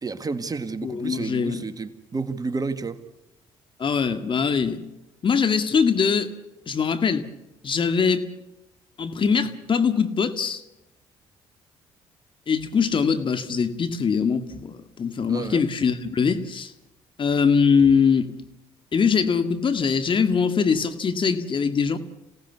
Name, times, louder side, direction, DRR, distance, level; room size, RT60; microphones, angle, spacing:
voice 1, 0.0-3.0 15.3-15.6, right 4 dB, 35° right, 1.9 m, -30 dB
voice 2, 0.8-1.6 3.8-4.8 5.2-6.3 6.7-7.2 7.6-8.3 9.0-10.6 12.5-16.7 17.2-18.3 18.9-22.0, left 6 dB, 45° left, 1.9 m, -22 dB
27.0 x 18.0 x 8.3 m
supercardioid pair, 60°, 12 cm